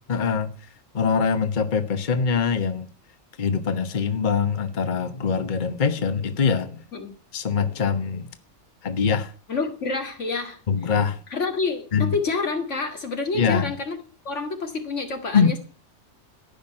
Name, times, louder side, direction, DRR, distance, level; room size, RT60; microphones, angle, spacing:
voice 1, 0.1-0.7 0.9-2.9 3.4-6.8 7.3-8.3 8.8-9.3 10.7-11.2 11.9-12.1 13.3-13.7 15.3-15.5, left 6 dB, 40° left, 1.2 m, -23 dB
voice 2, 9.5-10.6 11.3-14.0 14.2-15.6, left 4 dB, 80° left, 2.4 m, -28 dB
14.5 x 5.9 x 9.7 m
omnidirectional pair, 1.2 m